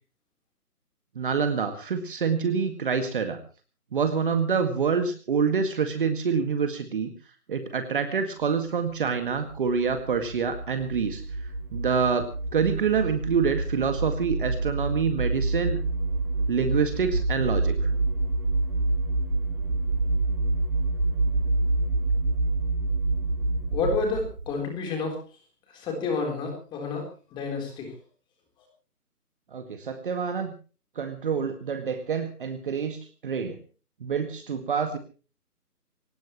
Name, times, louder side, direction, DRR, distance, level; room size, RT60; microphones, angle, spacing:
voice 1, 1.2-3.4 3.9-7.1 7.5-11.2 11.7-12.3 12.5-15.8 16.5-17.9 29.5-30.5 31.0-33.6 34.0-35.0, right 6 dB, 35° right, 8 dB, 1.9 m, -26 dB
sound 1, 9.2-24.5, right 2 dB, 85° right, 3.5 m, -27 dB
voice 2, 23.7-25.2 25.7-28.0, left 4 dB, 10° left, 3 dB, 3.8 m, -30 dB
24.0 x 18.5 x 3.1 m, 0.37 s
figure-of-eight pair, 160°, 47 cm